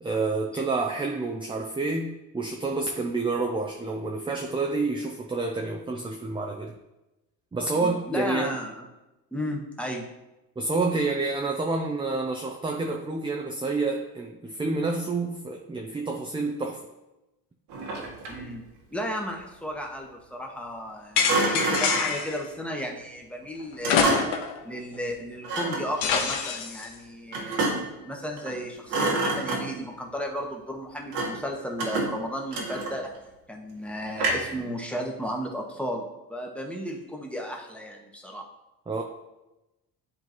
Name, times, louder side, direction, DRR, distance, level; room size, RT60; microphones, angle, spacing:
voice 1, 0.0-6.7 7.5-8.5 10.6-16.9 38.9-39.0, right 3 dB, 10° right, 1 dB, 0.6 m, -28 dB
voice 2, 7.8-8.9 9.3-10.1 18.3-18.6 18.9-24.2 24.6-27.7 28.0-33.1 33.5-38.4, equal, 5° left, 0 dB, 1.2 m, -34 dB
Thump thud, 17.7-18.5 21.3-22.2 23.8-24.5 25.4-25.9 27.3-28.0 28.4-28.6 28.9-29.9 31.1-31.5 31.8-33.2 34.2-34.6, right 3 dB, 75° right, 1.7 m, -28 dB
sound 1, 21.2-22.4 23.8-24.6 24.9-25.0 26.0-26.9, left 6 dB, 90° left, 1.0 m, -25 dB
10.5 x 3.8 x 3.1 m, 0.98 s
cardioid pair, 100°, 40 cm